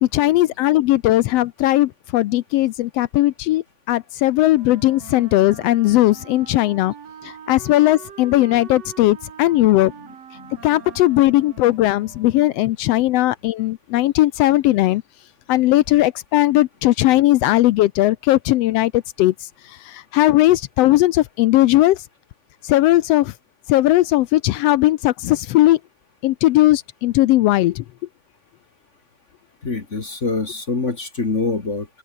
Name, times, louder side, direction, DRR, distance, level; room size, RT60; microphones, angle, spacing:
voice 1, 0.0-6.9 7.2-9.9 10.6-15.0 15.5-19.3 19.8-22.0 22.6-23.3 23.7-25.8 26.2-27.8, left 16 dB, 75° left, 1.5 m, -17 dB
Wind instrument woodwind instrument, 4.5-12.8, right 8 dB, 60° right, 3.1 m, -42 dB
voice 2, 29.6-31.9, left 3 dB, 30° left, 1.8 m, -25 dB
open air
omnidirectional pair, 3.3 m